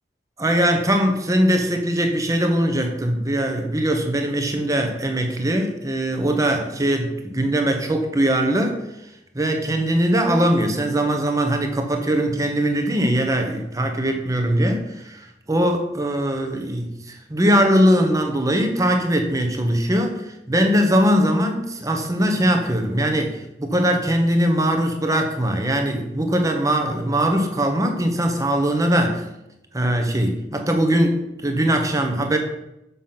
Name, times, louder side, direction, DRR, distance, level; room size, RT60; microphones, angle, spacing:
voice 1, 0.4-8.8 9.3-29.2 29.7-32.4, right 1 dB, 20° right, 4 dB, 1.1 m, -21 dB
7.2 x 5.9 x 5.8 m, 0.89 s
head